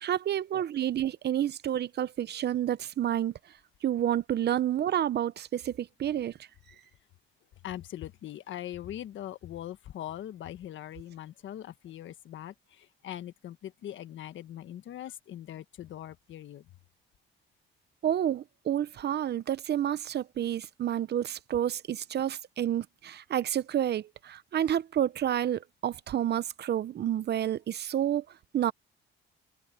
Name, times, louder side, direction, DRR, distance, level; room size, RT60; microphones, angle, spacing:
voice 1, 0.0-3.3 3.8-6.3 18.0-28.2 28.5-28.7, right 11 dB, 55° right, 0.8 m, -29 dB
voice 2, 7.6-16.7, left 12 dB, 70° left, 1.5 m, -41 dB
cardioid pair, 90°, 20 cm